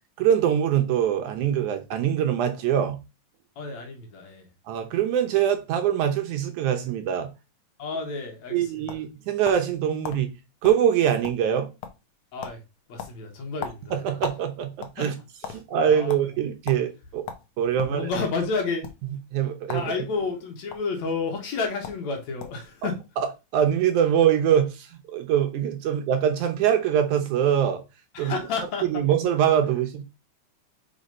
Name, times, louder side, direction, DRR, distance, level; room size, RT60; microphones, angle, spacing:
voice 1, 0.2-3.0 4.7-7.3 8.5-10.3 10.6-11.7 13.9-15.1 15.5-17.2 17.6-18.1 19.3-19.8 23.5-27.8 28.2-28.3 28.9-30.0, right 9 dB, 75° right, 2.1 m, -23 dB
voice 2, 3.6-4.5 7.8-9.0 12.3-12.6 12.9-14.0 15.0-15.1 15.5-16.3 17.7-18.9 19.7-23.0 28.1-29.1, left 4 dB, 65° left, 2.5 m, -31 dB
sound 1, 8.9-9.7 10.0-10.2 10.6-10.8 11.1-11.6 11.8-12.1 12.4-12.6 13.0-14.4 14.7-15.6 16.1-16.2 16.7-16.8 17.3-18.0 18.7-18.9 19.6-19.9 20.2-20.8 21.5-21.6 21.8-22.0 22.4-22.7, left 7 dB, 80° left, 1.2 m, -37 dB
5.0 x 5.0 x 5.3 m
omnidirectional pair, 3.8 m